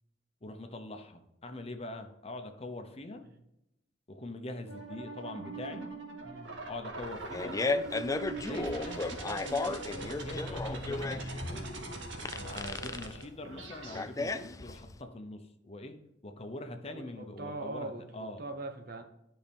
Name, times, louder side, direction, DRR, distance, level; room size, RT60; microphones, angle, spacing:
voice 1, 0.4-3.2 4.1-5.9 6.6-7.9 8.2-12.0 12.4-16.0 16.2-18.4, left 2 dB, 35° left, 6 dB, 0.9 m, -43 dB
sound 1, 4.7-14.0, right 2 dB, 85° right, 1.9 m, -41 dB
Fart, 7.0-15.0, left 3 dB, 20° left, 0.3 m, -35 dB
voice 2, 16.9-18.0 18.4-19.0, right 2 dB, 55° right, 6 dB, 1.1 m, -40 dB
12.5 x 5.7 x 3.5 m, 0.86 s
head